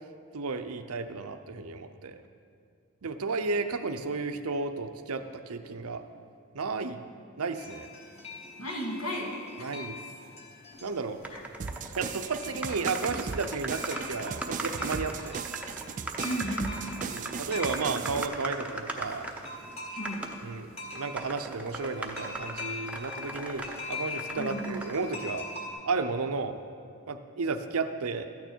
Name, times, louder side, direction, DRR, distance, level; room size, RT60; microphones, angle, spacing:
voice 1, 0.3-2.2 3.0-6.0 6.5-7.1 7.4-7.9 9.6-10.0 10.8-11.2 12.0-15.4 17.0-19.3 20.4-25.5 25.8-26.6 27.1-28.3, right 4 dB, 75° right, 8 dB, 0.7 m, -33 dB
sound 1, 7.6-25.7, left 3 dB, 30° left, 1.7 m, -43 dB
voice 2, 8.6-9.7 11.3-11.4 16.2-16.8 19.9-20.3 24.4-24.9, equal, 80° left, -1 dB, 1.9 m, -34 dB
sound 2, 11.2-12.0 12.3-12.4 12.6-19.6 20.0-20.4 20.9-23.8 24.1-25.0, right 2 dB, 5° right, 0.6 m, -38 dB
sound 3, 11.6-18.3, right 6 dB, 35° right, 0.3 m, -37 dB
13.0 x 9.3 x 4.5 m, 2.4 s
head